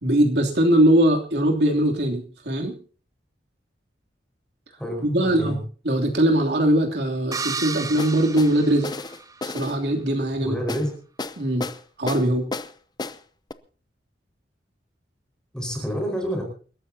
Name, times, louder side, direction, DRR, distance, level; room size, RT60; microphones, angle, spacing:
voice 1, 0.0-2.7 5.0-5.6 5.8-8.9 9.4-10.6 11.4-11.7 12.0-12.5, right 1 dB, 65° right, 1 dB, 3.0 m, -21 dB
voice 2, 4.8-5.6 10.4-10.9 15.5-16.4, equal, 5° left, 2 dB, 5.0 m, -28 dB
sound 1, 7.3-9.5, right 5 dB, 20° right, 0.6 m, -33 dB
sound 2, 8.0-8.5 8.8-9.8 10.7-10.9 11.2-11.8 12.1-12.7 13.0-13.2 13.5-13.6, left 3 dB, 25° left, 0.6 m, -32 dB
28.5 x 13.0 x 2.8 m, 0.40 s
head